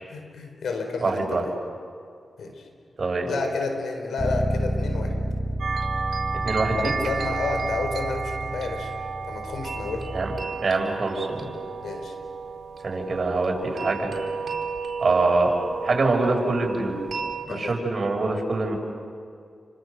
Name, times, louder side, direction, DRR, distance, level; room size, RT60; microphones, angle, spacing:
voice 1, 0.1-1.5 2.4-2.6 3.3-5.2 6.8-8.9 9.2-10.1 11.8-12.1 17.5-17.7, left 3 dB, 85° left, 4 dB, 4.4 m, -30 dB
voice 2, 1.0-1.4 3.0-3.3 6.4-6.9 10.1-10.3 10.6-11.5 12.8-14.1 15.0-15.5 15.8-17.0 17.5-18.8, right 3 dB, 55° right, 1 dB, 6.3 m, -24 dB
Bass guitar, 4.2-10.4, equal, 5° left, 1.6 m, -31 dB
sound 1, 5.6-17.4, right 5 dB, 70° right, 4.3 m, -32 dB
29.0 x 25.5 x 6.7 m, 2.3 s
cardioid pair, 60°, 0 cm